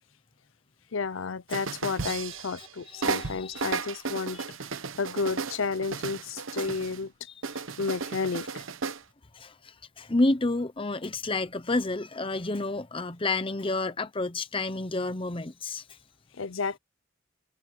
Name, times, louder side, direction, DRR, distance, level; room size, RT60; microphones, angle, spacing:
voice 1, 0.9-4.4 5.0-7.1 7.8-8.6 16.3-16.8, left 4 dB, 85° left, 0.7 m, -31 dB
sound 1, 1.5-2.7 3.0-7.0 7.4-9.0, right 4 dB, 85° right, 1.1 m, -34 dB
voice 2, 2.6-3.6 4.3-4.4 9.3-15.8, left 2 dB, 25° left, 0.9 m, -30 dB
head